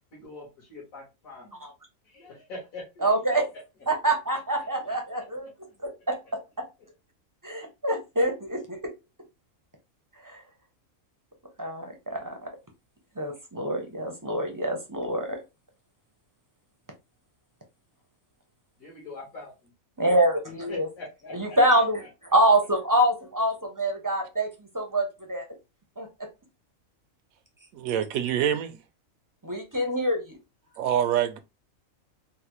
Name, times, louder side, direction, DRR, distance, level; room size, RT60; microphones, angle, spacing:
voice 1, 0.1-1.6 2.0-3.6 4.0-4.1 4.8-5.0 5.4-5.5 18.8-19.7 20.7-22.1, left 2 dB, 75° left, 1.8 m, -43 dB
voice 2, 3.0-3.4 3.9-5.5 6.1-6.2 7.4-8.8 11.6-12.5 13.2-15.4 20.0-20.9 21.3-22.0 22.3-24.5 24.7-25.4 26.0-26.1 29.4-30.4, right 1 dB, 30° right, 0.3 m, -25 dB
voice 3, 27.7-28.8 30.8-31.4, right 10 dB, 80° right, 1.0 m, -25 dB
4.0 x 2.1 x 3.0 m
omnidirectional pair, 1.4 m